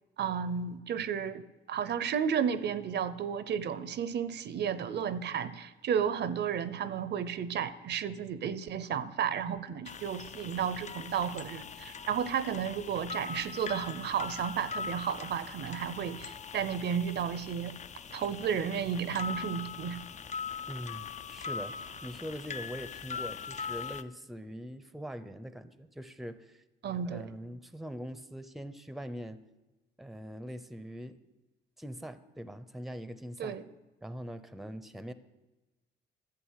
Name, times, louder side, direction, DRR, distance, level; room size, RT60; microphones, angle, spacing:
voice 1, 0.2-17.8 18.1-20.0 26.8-27.2 33.4-33.6, right 8 dB, 60° right, 15 dB, 0.7 m, -33 dB
sound 1, 9.8-24.0, left 5 dB, 35° left, 0.5 m, -41 dB
voice 2, 20.7-26.6 27.1-29.4 30.0-31.2 31.8-33.6 34.0-35.1, equal, ahead, 13 dB, 0.7 m, -42 dB
11.5 x 8.1 x 6.4 m, 1.1 s
cardioid pair, 90°, 20 cm